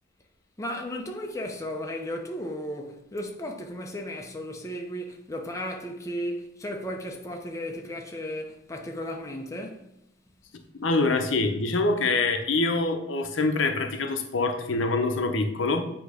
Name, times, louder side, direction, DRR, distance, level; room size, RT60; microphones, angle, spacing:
voice 1, 0.6-9.9, equal, 15° left, 0.7 m, -35 dB
voice 2, 10.8-15.8, left 3 dB, 75° left, 0.8 m, -25 dB
8.3 x 3.0 x 5.0 m
head